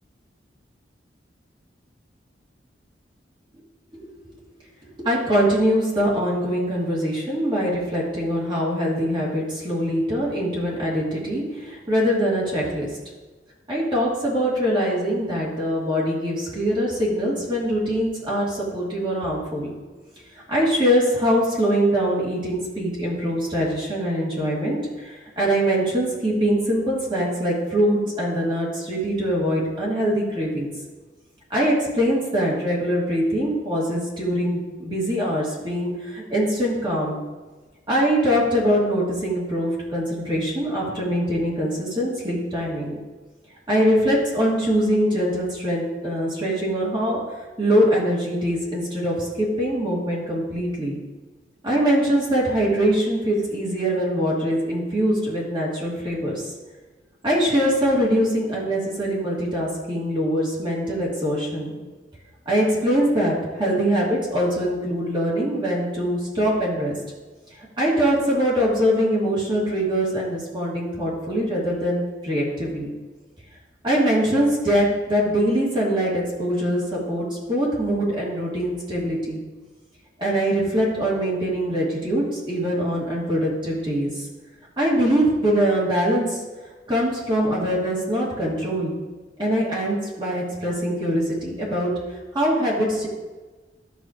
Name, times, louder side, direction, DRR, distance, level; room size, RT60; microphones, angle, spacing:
voice 1, 5.0-12.9 13.7-19.8 20.5-30.7 31.5-37.2 37.9-43.0 43.7-47.2 47.6-51.0 51.6-56.5 57.2-61.7 62.5-66.9 67.8-72.9 73.8-79.4 80.2-84.3 84.8-86.4 86.9-88.9 89.4-91.9 92.3-93.1, equal, 25° right, -6 dB, 2.4 m, -23 dB
12.0 x 6.5 x 3.2 m, 1.2 s
head